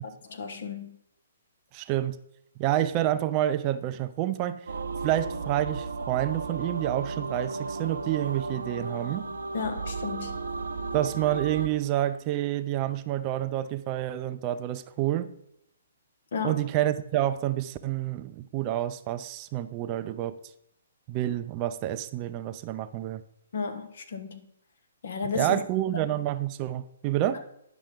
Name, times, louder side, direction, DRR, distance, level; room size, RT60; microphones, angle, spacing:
voice 1, 0.2-1.0 9.5-10.4 16.3-16.7 23.5-24.5 25.0-25.6, left 5 dB, 60° left, 1.1 m, -33 dB
voice 2, 1.7-2.2 2.6-4.6 5.0-9.3 10.9-15.3 16.4-20.3 21.1-23.2 25.3-27.4, right 13 dB, 30° right, 0.4 m, -28 dB
sound 1, 4.7-11.7, right 4 dB, 75° right, 0.7 m, -34 dB
10.5 x 5.8 x 3.8 m
figure-of-eight pair, 130°, 0 cm